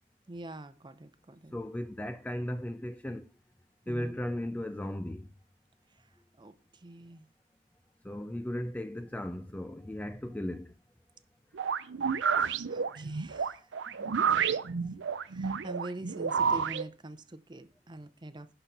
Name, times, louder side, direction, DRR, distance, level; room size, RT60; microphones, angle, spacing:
voice 1, 0.3-1.5 3.9-4.2 5.9-6.1 6.4-7.3 12.7-14.5 15.2-18.5, right 2 dB, 25° right, 0.7 m, -45 dB
voice 2, 1.5-3.3 3.9-5.3 8.0-10.7, left 1 dB, 10° left, 0.3 m, -36 dB
sound 1, 11.5-16.8, right 6 dB, 90° right, 0.5 m, -30 dB
11.5 x 4.1 x 5.9 m
head